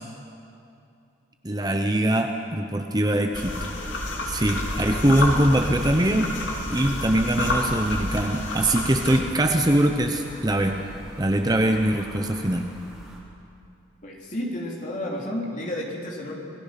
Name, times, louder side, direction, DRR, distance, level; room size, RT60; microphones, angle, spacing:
voice 1, 1.4-3.5 4.3-6.3 6.7-10.8 11.2-12.7, right 1 dB, 20° right, 4 dB, 0.9 m, -22 dB
sound 1, 3.3-9.2, left 1 dB, 80° left, 2.9 m, -29 dB
sound 2, 3.5-13.2, equal, ahead, 3.5 m, -43 dB
voice 2, 14.0-16.3, left 1 dB, 40° left, -2 dB, 3.3 m, -31 dB
27.5 x 18.5 x 5.9 m, 2.6 s
head